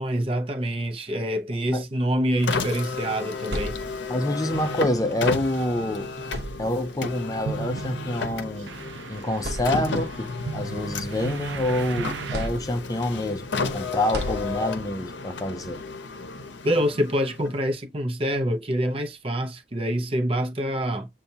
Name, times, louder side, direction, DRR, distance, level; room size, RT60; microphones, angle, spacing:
voice 1, 0.0-3.8 16.6-21.1, equal, 30° right, 0.7 m, -26 dB
Car, 2.4-17.8, left 4 dB, 85° left, 0.6 m, -33 dB
sound 1, 3.3-4.3 5.6-5.7 6.2-7.1 8.2-8.3 8.9-9.0 9.4-10.2 10.7-11.8 12.3-13.1 14.1-15.0, equal, 65° right, 0.9 m, -35 dB
voice 2, 4.1-6.1 6.6-8.7 9.1-15.8, left 1 dB, 20° left, 0.5 m, -27 dB
sound 2, 4.5-12.5, right 5 dB, 85° right, 0.4 m, -37 dB
6.7 x 2.3 x 2.7 m
head